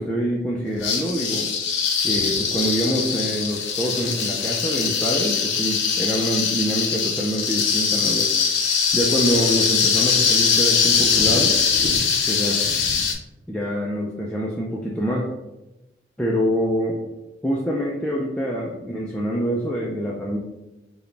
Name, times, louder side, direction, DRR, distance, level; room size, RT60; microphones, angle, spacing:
voice 1, 0.0-1.5 2.0-8.3 8.9-11.6 12.3-12.6 13.5-15.3 16.2-17.0 17.4-20.4, equal, 5° left, -4 dB, 0.4 m, -25 dB
sound 1, 0.8-13.1, left 6 dB, 90° left, 0.7 m, -22 dB
4.7 x 2.2 x 3.2 m, 1.0 s
head